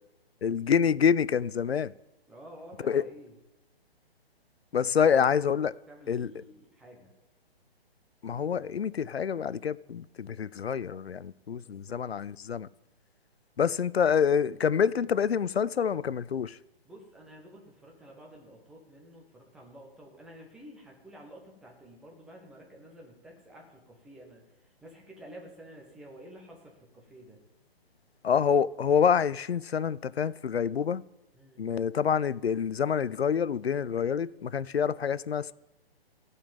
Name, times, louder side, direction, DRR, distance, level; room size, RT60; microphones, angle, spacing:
voice 1, 0.4-1.9 2.8-3.0 4.7-5.7 6.1-6.3 8.2-12.7 13.6-16.6 28.2-31.0 31.6-35.5, left 7 dB, 80° left, 0.5 m, -27 dB
voice 2, 2.3-3.3 4.8-5.4 5.7-7.1 11.6-12.0 16.8-27.4 31.3-31.7, equal, ahead, 0.5 m, -51 dB
16.0 x 5.5 x 7.2 m
figure-of-eight pair, 135°, 31 cm